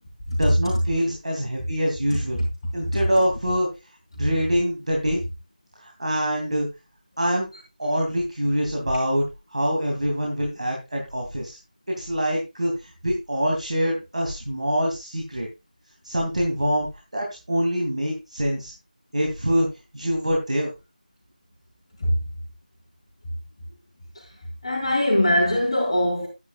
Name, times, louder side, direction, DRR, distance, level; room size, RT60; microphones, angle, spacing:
voice 1, 0.4-2.4 2.7-3.7 4.2-5.2 5.8-6.7 7.2-7.5 7.8-9.2 9.5-11.6 11.9-15.5 16.0-16.9 17.1-18.7 19.1-19.7 19.9-20.7, equal, 50° right, 2.7 m, -24 dB
voice 2, 2.1-2.5 2.8-3.0 22.0-22.2 24.1-26.3, left 1 dB, 35° left, 3.0 m, -23 dB
12.0 x 9.8 x 2.4 m
figure-of-eight pair, 170°, 5 cm